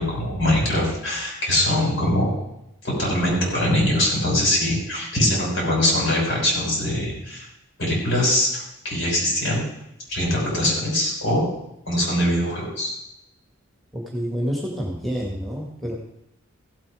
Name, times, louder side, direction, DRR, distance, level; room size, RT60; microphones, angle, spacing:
voice 1, 0.0-2.4 2.8-7.5 7.8-9.6 10.1-11.5 11.9-12.9, left 1 dB, 60° left, -3 dB, 6.0 m, -22 dB
voice 2, 13.9-15.9, equal, ahead, -2 dB, 1.9 m, -28 dB
16.0 x 8.5 x 5.0 m, 0.84 s
head